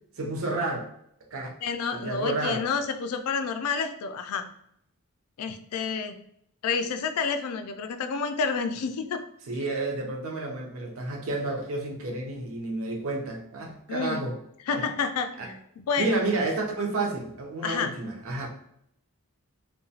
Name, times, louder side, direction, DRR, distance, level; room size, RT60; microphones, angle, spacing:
voice 1, 0.2-0.9 1.3-1.5 1.9-2.6 9.5-14.4 14.7-14.8 15.4-15.5 16.0-18.5, right 2 dB, 65° right, 1 dB, 0.6 m, -30 dB
voice 2, 1.6-4.4 5.4-6.2 6.6-9.2 13.9-14.3 14.7-16.2 17.6-17.9, left 5 dB, 85° left, 8 dB, 0.3 m, -29 dB
2.8 x 2.1 x 2.7 m, 0.71 s
head